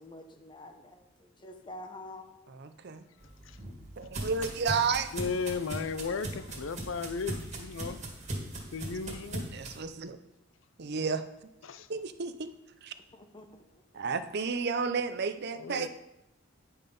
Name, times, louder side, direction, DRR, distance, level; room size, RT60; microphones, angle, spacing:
voice 1, 0.0-2.5 13.1-13.8, left 1 dB, 25° left, 5 dB, 0.9 m, -48 dB
voice 2, 2.5-3.0 4.0-5.1 9.5-10.2 10.8-11.2 11.9-12.5 12.8-12.9 13.9-15.9, right 5 dB, 55° right, 11 dB, 0.6 m, -32 dB
sound 1, 3.2-9.8, right 1 dB, 35° right, 1.9 m, -39 dB
voice 3, 5.1-8.0 8.7-9.4 11.6-11.9 15.5-15.9, left 5 dB, 70° left, 13 dB, 0.5 m, -35 dB
9.7 x 5.6 x 5.4 m, 0.91 s
head